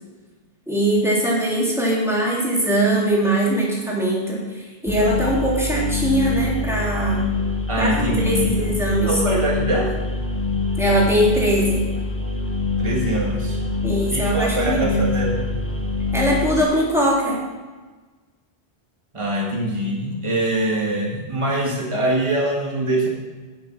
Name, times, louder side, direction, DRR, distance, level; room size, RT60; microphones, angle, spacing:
voice 1, 0.7-7.3 7.8-9.1 10.8-11.9 13.8-15.1 16.1-17.4, right 1 dB, 5° right, -5 dB, 3.1 m, -21 dB
sound 1, 4.9-16.6, left 3 dB, 15° left, 1.1 m, -25 dB
voice 2, 7.7-8.6 9.0-10.0 12.8-13.6 14.1-15.4 19.1-23.1, right 1 dB, 30° right, -2 dB, 1.9 m, -23 dB
10.0 x 7.3 x 5.9 m, 1.3 s
omnidirectional pair, 1.1 m